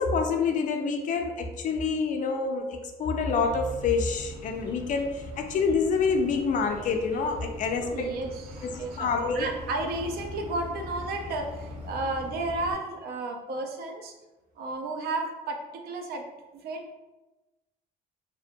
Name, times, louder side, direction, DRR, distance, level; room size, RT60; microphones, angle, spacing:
voice 1, 0.0-8.1 8.6-9.4, left 4 dB, 50° left, 4 dB, 0.4 m, -27 dB
sound 1, 3.3-12.7, left 1 dB, 40° right, 0.8 m, -42 dB
voice 2, 7.7-14.1 14.6-16.2 16.5-17.0, right 2 dB, 65° right, 3 dB, 0.5 m, -33 dB
2.6 x 2.1 x 2.6 m, 1.1 s
cardioid pair, 110°, 17 cm